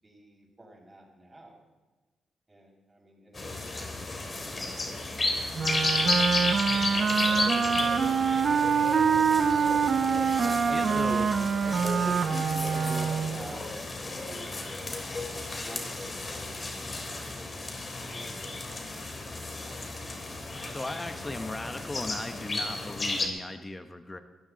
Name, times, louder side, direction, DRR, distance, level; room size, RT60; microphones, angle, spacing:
voice 1, 0.0-1.6 2.5-4.2 4.4-4.7 7.5-9.7 10.4-11.2 11.6-18.9, equal, 25° right, -1 dB, 7.1 m, -45 dB
sound 1, 3.3-23.3, left 2 dB, 40° left, 3.5 m, -33 dB
Wind instrument woodwind instrument, 5.5-13.4, right 6 dB, 55° right, 1.0 m, -25 dB
sound 2, 6.7-15.5, left 2 dB, 65° left, 4.8 m, -45 dB
voice 2, 10.7-11.3 20.7-24.2, left 2 dB, 25° left, 8 dB, 1.4 m, -37 dB
23.0 x 14.0 x 4.2 m, 1.2 s
supercardioid pair, 50°, 0 cm